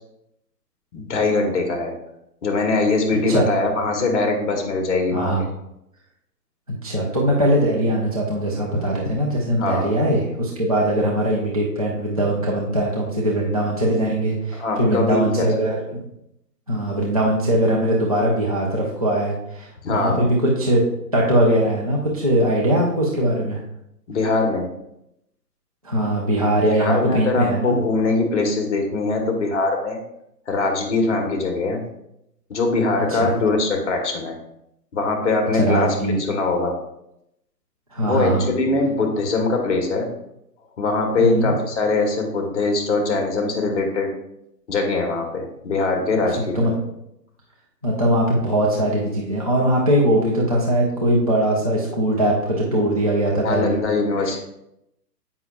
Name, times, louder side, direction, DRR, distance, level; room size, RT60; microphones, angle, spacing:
voice 1, 0.9-2.0 2.4-5.3 9.6-9.9 14.5-15.5 19.8-20.3 24.1-24.7 26.7-30.0 30.5-31.8 32.5-34.4 34.9-36.8 38.0-40.1 40.8-44.1 44.7-46.7 53.4-54.4, left 3 dB, 45° left, 3 dB, 1.2 m, -22 dB
voice 2, 5.1-5.5 6.8-15.8 16.7-20.8 21.1-23.6 25.8-27.8 33.1-33.3 35.5-36.2 37.9-38.5 41.2-41.5 46.4-46.7 47.8-53.7, right 1 dB, 25° right, -4 dB, 0.4 m, -21 dB
7.8 x 5.5 x 2.3 m, 0.81 s
hypercardioid pair, 145°, 50 cm